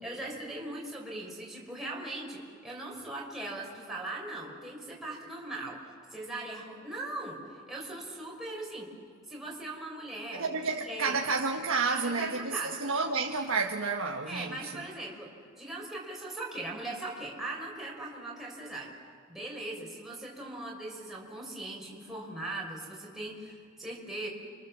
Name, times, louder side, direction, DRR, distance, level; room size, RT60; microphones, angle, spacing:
voice 1, 0.0-5.8 6.1-8.9 9.3-10.5 10.8-11.2 11.9-12.7 14.3-15.3 15.6-18.9 19.3-24.3, right 2 dB, ahead, 5.1 m, -39 dB
voice 2, 10.3-14.8, right 4 dB, 85° right, 1.3 m, -30 dB
29.5 x 26.0 x 7.4 m
head